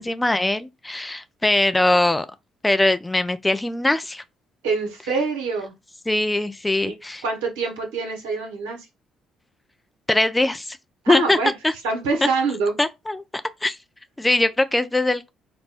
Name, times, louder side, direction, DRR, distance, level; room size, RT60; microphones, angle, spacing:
voice 1, 0.0-2.3 2.6-4.2 6.1-7.2 10.1-10.8 11.1-11.4 11.6-11.7 12.8-13.2 13.6-13.8 14.2-15.3, left 2 dB, 15° left, 0.5 m, -21 dB
voice 2, 4.6-5.7 6.8-6.9 7.2-8.8 11.0-11.5 11.8-12.7, right 4 dB, 80° right, 1.1 m, -25 dB
4.1 x 2.2 x 4.1 m
hypercardioid pair, 50°, 0 cm